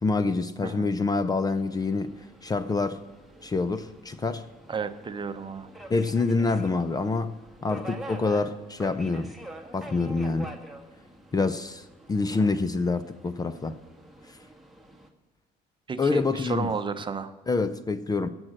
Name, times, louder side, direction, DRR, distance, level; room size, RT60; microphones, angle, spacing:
voice 1, 0.0-2.1 2.4-3.0 3.4-4.5 5.9-7.3 7.6-9.3 9.7-10.5 11.3-13.7 16.0-16.7 17.5-18.3, left 3 dB, 20° left, 13 dB, 0.6 m, -26 dB
Subway metro underground, 1.5-15.1, right 1 dB, ahead, 1.6 m, -46 dB
voice 2, 4.7-5.7 15.9-17.3, right 5 dB, 30° right, 10 dB, 0.8 m, -32 dB
17.0 x 6.2 x 7.8 m, 1.2 s
cardioid pair, 110°, 17 cm